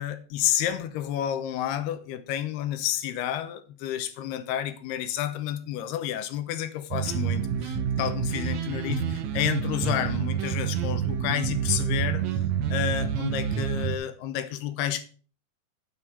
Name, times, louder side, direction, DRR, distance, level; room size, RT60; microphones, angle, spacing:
voice 1, 0.0-12.4 12.7-15.0, left 11 dB, 85° left, 2.9 m, -30 dB
sound 1, 6.9-14.0, right 8 dB, 85° right, 1.6 m, -28 dB
9.5 x 8.1 x 4.6 m
omnidirectional pair, 4.6 m